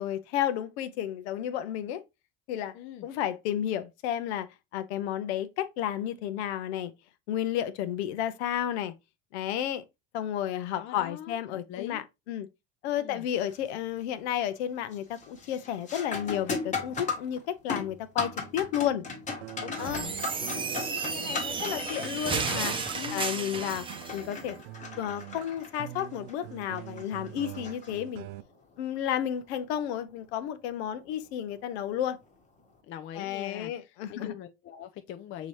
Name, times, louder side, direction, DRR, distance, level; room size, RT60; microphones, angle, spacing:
voice 1, 0.0-2.0 2.5-2.7 3.0-4.5 4.7-6.9 7.3-8.9 9.3-9.8 10.1-12.5 12.8-19.0 19.8-20.1 20.5-22.7 23.1-23.9 24.1-24.6 25.0-28.2 28.8-32.2 33.2-34.3, left 10 dB, 80° left, 0.7 m, -32 dB
voice 2, 2.7-3.1 10.7-11.4 11.7-12.0 13.0-13.3 19.6-20.7 22.9-23.3 32.8-35.5, left 11 dB, 40° left, 0.5 m, -42 dB
sound 1, 13.3-13.7 14.1-14.6 14.9-28.4 30.9-31.0 31.9-32.1, left 4 dB, 20° left, 1.2 m, -38 dB
sound 2, 19.4-28.4, right 16 dB, 75° right, 0.5 m, -44 dB
sound 3, 19.8-24.2, right 4 dB, 15° right, 0.7 m, -33 dB
5.9 x 2.8 x 3.1 m
supercardioid pair, 115°, 33 cm